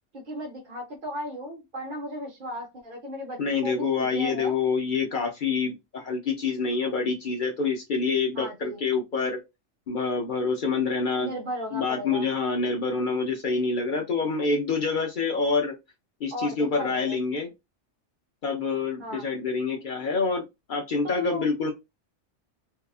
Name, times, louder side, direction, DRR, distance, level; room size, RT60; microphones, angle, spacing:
voice 1, 0.1-4.5 8.3-8.8 11.2-12.2 16.3-17.2 19.0-19.3 21.0-21.4, equal, 50° right, -2 dB, 0.7 m, -36 dB
voice 2, 3.4-9.4 9.9-11.3 11.7-15.7 16.2-17.5 18.4-20.4 20.7-21.7, left 4 dB, 55° left, 2 dB, 0.6 m, -26 dB
2.7 x 2.2 x 2.3 m, 0.22 s
omnidirectional pair, 1.2 m